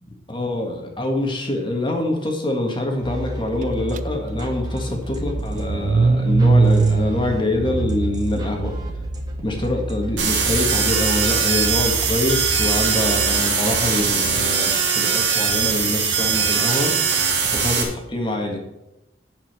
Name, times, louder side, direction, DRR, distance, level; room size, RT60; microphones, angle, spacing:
voice 1, 0.3-8.7 9.4-16.9 17.5-18.6, left 1 dB, 25° left, 2 dB, 1.7 m, -25 dB
sound 1, 3.0-13.6, equal, 20° right, 1.7 m, -31 dB
Car / Engine starting, 3.9-4.0 4.4-9.6, right 4 dB, 45° right, 0.3 m, -21 dB
sound 2, 10.2-17.8, right 6 dB, 85° right, 2.0 m, -21 dB
9.5 x 5.6 x 6.6 m, 0.91 s
head